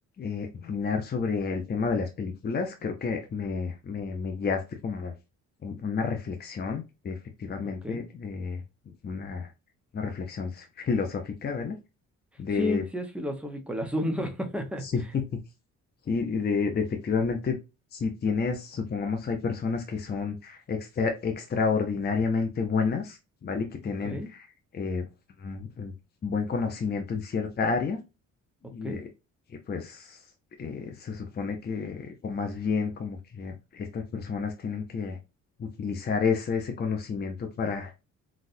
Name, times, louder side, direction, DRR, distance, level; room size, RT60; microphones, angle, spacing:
voice 1, 0.2-5.1 5.6-8.6 9.0-9.5 9.9-11.8 12.4-12.8 15.1-15.2 16.1-17.6 17.9-24.5 24.7-25.1 25.4-25.9 26.2-28.0 28.7-29.1 29.7-30.2 30.6-35.2 35.6-37.9, left 5 dB, 35° left, 0.6 m, -30 dB
voice 2, 12.5-15.1 24.0-24.3 28.6-29.0, left 1 dB, 5° right, 0.9 m, -32 dB
4.0 x 2.4 x 2.6 m
cardioid pair, 90°, 30 cm